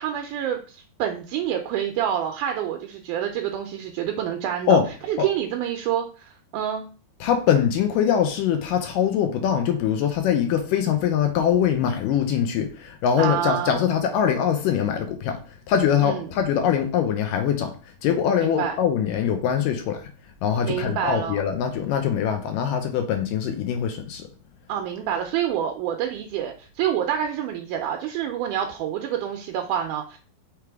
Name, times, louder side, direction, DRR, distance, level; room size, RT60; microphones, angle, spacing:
voice 1, 0.0-4.8 5.1-6.9 13.2-13.8 16.0-16.3 18.4-18.8 20.6-21.4 24.7-30.2, right 10 dB, 80° right, 4 dB, 1.9 m, -27 dB
voice 2, 7.2-15.4 15.7-17.7 18.0-20.1 20.4-24.3, left 8 dB, 75° left, 6 dB, 2.2 m, -23 dB
5.9 x 3.4 x 4.6 m, 0.37 s
omnidirectional pair, 4.2 m